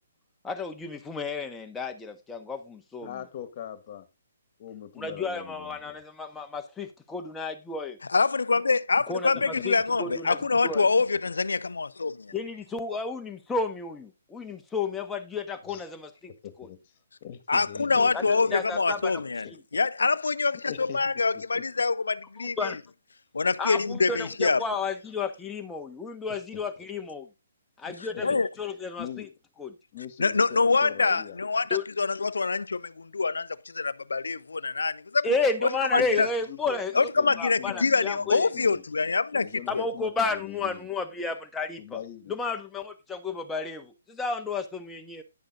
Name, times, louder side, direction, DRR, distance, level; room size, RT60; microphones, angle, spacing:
voice 1, 0.4-3.2 5.0-8.0 9.1-10.4 10.6-10.9 12.3-16.3 18.1-18.2 18.5-19.2 22.4-22.8 23.6-27.3 27.8-29.3 29.6-29.7 31.7-31.8 35.2-37.1 37.4-38.4 39.7-42.0 42.3-45.2, left 4 dB, 10° left, 1.4 m, -32 dB
voice 2, 3.0-4.1 4.6-6.0 9.3-9.6 10.6-10.7 15.6-15.9 16.3-16.8 17.2-18.8 19.4-19.5 20.7-21.2 21.5-21.6 26.3-26.6 27.8-28.4 28.9-29.3 29.9-31.4 35.9-38.8 39.3-40.9 41.8-42.4, left 10 dB, 40° left, 1.8 m, -42 dB
voice 3, 8.1-12.3 17.5-19.5 19.7-22.8 23.3-24.6 28.0-28.5 30.2-35.3 35.6-36.3 36.9-39.9, left 4 dB, 85° left, 0.6 m, -25 dB
10.5 x 6.5 x 3.8 m
hypercardioid pair, 140°, 0 cm